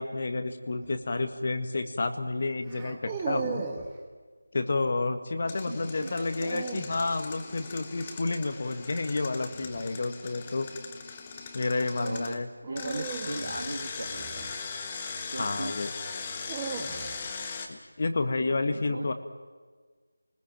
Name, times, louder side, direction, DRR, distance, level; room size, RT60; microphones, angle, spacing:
voice 1, 0.0-3.6 4.5-10.7 11.5-12.5 15.4-15.9 17.7-19.1, left 3 dB, 45° left, 8 dB, 1.8 m, -30 dB
sound 1, 0.8-1.1 2.7-3.9 6.0-7.0 9.5-9.8 12.6-15.0 16.1-17.4, right 5 dB, 15° right, 1.7 m, -38 dB
voice 2, 5.4-6.2 12.0-12.4 12.7-14.3 15.3-15.8 18.6-19.1, right 1 dB, 75° right, 2 dB, 2.1 m, -37 dB
Engine, 5.5-12.3 12.8-17.7, left 5 dB, 20° left, 1.4 m, -39 dB
27.0 x 20.0 x 7.6 m, 1.5 s
figure-of-eight pair, 170°, 0 cm